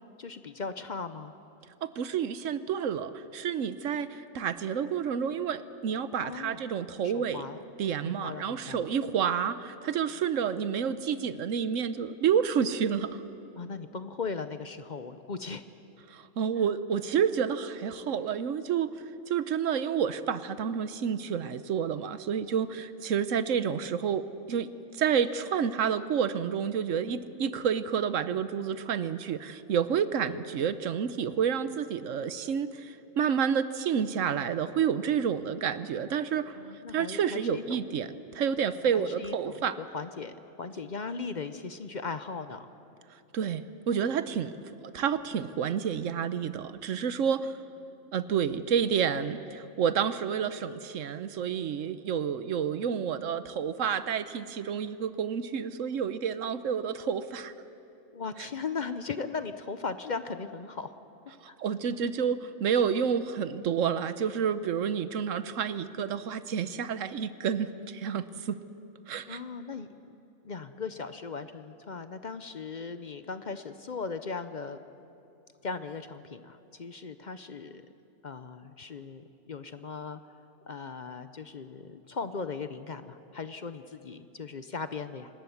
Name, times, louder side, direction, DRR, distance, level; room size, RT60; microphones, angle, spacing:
voice 1, 0.2-1.3 6.2-6.6 7.0-7.6 8.0-8.9 13.5-15.6 36.6-37.9 38.9-42.7 58.1-61.0 61.5-61.6 69.3-70.1 70.4-74.8 75.6-77.9 78.2-80.2 80.7-85.3, left 4 dB, 45° left, 11 dB, 0.6 m, -38 dB
voice 2, 1.8-7.5 7.8-13.2 16.1-18.9 19.3-24.7 24.9-36.6 36.9-39.8 43.3-44.5 44.9-47.5 48.1-57.5 61.6-68.6 69.1-69.4, right 7 dB, 65° right, 13 dB, 1.1 m, -29 dB
25.5 x 19.5 x 7.2 m, 2.9 s
omnidirectional pair, 1.5 m